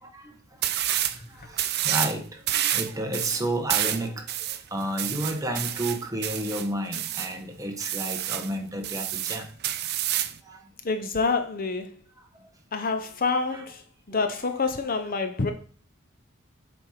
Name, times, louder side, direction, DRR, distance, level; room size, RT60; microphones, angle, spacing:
Sweeping Floors, 0.6-1.2 1.5-2.2 2.5-7.3 7.8-8.5 8.8-10.4, right 12 dB, 50° right, 0.5 m, -28 dB
voice 1, 1.0-9.5 10.4-10.6 12.7-12.9 13.5-13.6, right 1 dB, 15° right, 1.1 m, -32 dB
voice 2, 10.8-11.9 12.7-13.8 14.1-15.5, left 4 dB, 40° left, 0.7 m, -27 dB
7.6 x 4.3 x 4.8 m
head